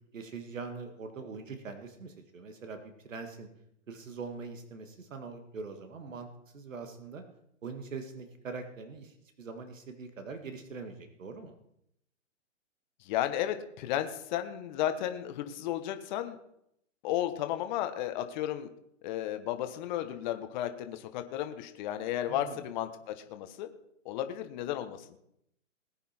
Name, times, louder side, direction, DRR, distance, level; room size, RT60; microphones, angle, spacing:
voice 1, 0.1-2.8 3.0-3.5 3.9-6.3 6.5-7.2 7.6-11.5 22.3-22.6, right 4 dB, 75° right, 6 dB, 2.1 m, -42 dB
voice 2, 13.0-16.4 17.0-18.7 19.0-23.7 24.0-25.1, left 12 dB, 35° left, 8 dB, 1.4 m, -33 dB
20.0 x 9.0 x 4.5 m, 0.77 s
hypercardioid pair, 140°, 39 cm